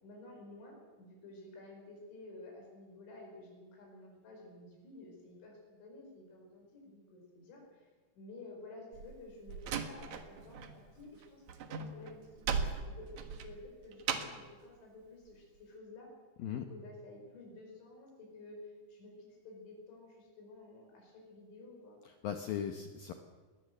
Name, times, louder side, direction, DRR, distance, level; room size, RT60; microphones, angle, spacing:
voice 1, 0.0-7.9 8.2-11.4 11.7-13.1 13.4-16.1 16.5-22.0, left 2 dB, 85° left, 0 dB, 7.4 m, -52 dB
Slam, 8.9-10.7 11.0-14.5, right 6 dB, 65° right, 1.8 m, -38 dB
voice 2, 22.1-23.1, left 9 dB, 70° left, 6 dB, 2.4 m, -38 dB
21.0 x 18.5 x 7.9 m, 1.4 s
omnidirectional pair, 5.2 m